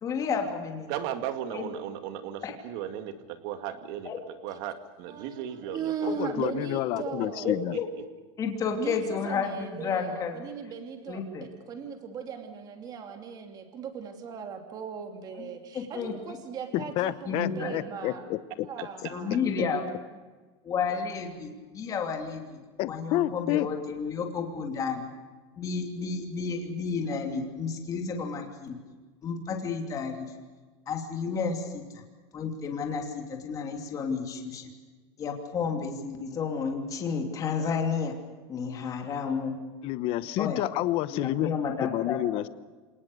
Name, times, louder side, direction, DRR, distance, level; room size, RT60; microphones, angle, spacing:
voice 1, 0.0-0.9 1.5-1.7 2.4-2.5 4.0-4.2 6.1-6.3 7.4-7.9 8.4-10.4 11.1-11.4 15.3-15.5 15.7-16.1 17.3-17.7 19.1-19.8 20.6-22.6 22.9-25.1 25.6-28.8 29.2-30.3 30.9-32.0 32.3-34.7 35.2-38.1 38.5-39.5 40.4-40.6 41.1-42.2, left 5 dB, 25° left, 3 dB, 2.9 m, -31 dB
voice 2, 0.9-6.2 7.4-7.8, right 10 dB, 50° right, 8 dB, 2.2 m, -36 dB
voice 3, 5.1-7.5 8.7-18.3 18.6-19.4, right 6 dB, 25° right, 5 dB, 2.9 m, -38 dB
voice 4, 6.2-7.8 16.7-18.7 19.0-19.1 22.8-23.7 39.8-41.5 41.8-42.5, left 14 dB, 40° left, 15 dB, 1.0 m, -29 dB
27.5 x 19.0 x 6.8 m, 1.3 s
supercardioid pair, 160°, 15 cm